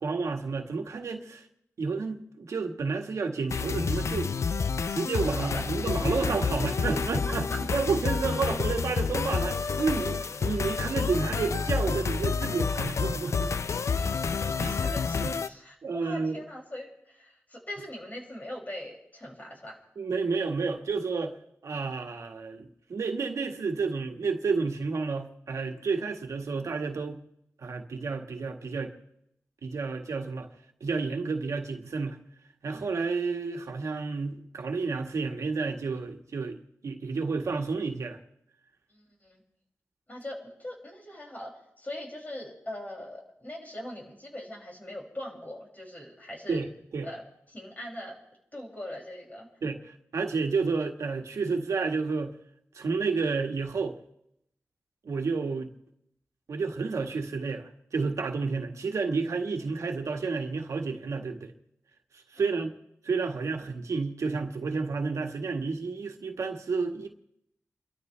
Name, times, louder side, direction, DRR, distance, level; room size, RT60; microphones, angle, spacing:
voice 1, 0.0-1.4 1.8-4.3 4.9-13.5 14.6-14.7 15.2-15.3 15.8-16.4 20.0-21.3 21.6-27.2 27.6-28.9 29.6-30.5 30.8-32.2 32.6-36.6 36.8-38.2 46.5-47.1 49.6-52.3 52.7-54.0 55.0-55.7 56.5-61.5 62.3-62.7 63.0-67.1, right 4 dB, 85° right, 1.7 m, -30 dB
sound 1, 3.5-15.5, left 5 dB, 75° left, 0.5 m, -29 dB
voice 2, 14.6-19.8 38.9-39.4 40.1-41.5 41.8-46.7 47.0-47.2 47.5-48.2 48.5-49.5 62.4-62.6, left 1 dB, 35° left, 6.5 m, -41 dB
30.0 x 13.0 x 3.4 m
wide cardioid pair, 70°, 5 cm